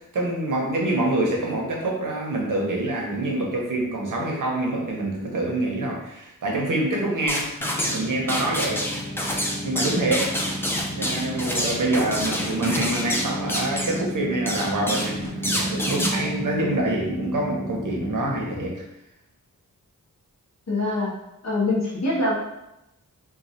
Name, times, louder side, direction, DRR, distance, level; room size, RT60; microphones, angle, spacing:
voice 1, 0.1-7.5 7.9-8.8 9.6-10.3 10.9-18.7, right 2 dB, 65° right, -1 dB, 0.8 m, -26 dB
sound 1, 7.3-8.0 8.3-14.0 14.5-15.1 15.4-16.1, equal, 5° left, 0.4 m, -27 dB
sound 2, 7.6-18.7, equal, 75° left, 1.4 m, -33 dB
voice 2, 20.7-21.1 21.4-22.5, left 2 dB, 50° left, -5 dB, 0.9 m, -24 dB
3.1 x 2.2 x 2.7 m, 0.86 s
wide cardioid pair, 90°, 34 cm